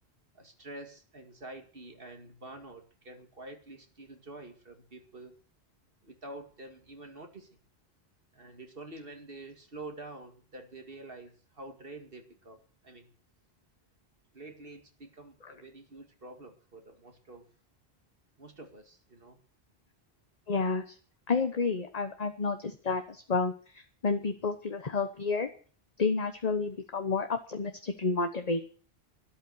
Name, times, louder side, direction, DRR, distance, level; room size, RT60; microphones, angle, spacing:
voice 1, 0.3-5.3 6.0-7.5 8.3-13.1 14.3-17.5 18.4-19.4, right 2 dB, 60° right, 5 dB, 2.4 m, -47 dB
voice 2, 20.5-21.0 21.3-25.5 26.0-28.7, left 4 dB, 40° left, 7 dB, 1.1 m, -30 dB
12.5 x 11.5 x 7.8 m, 0.42 s
omnidirectional pair, 1.1 m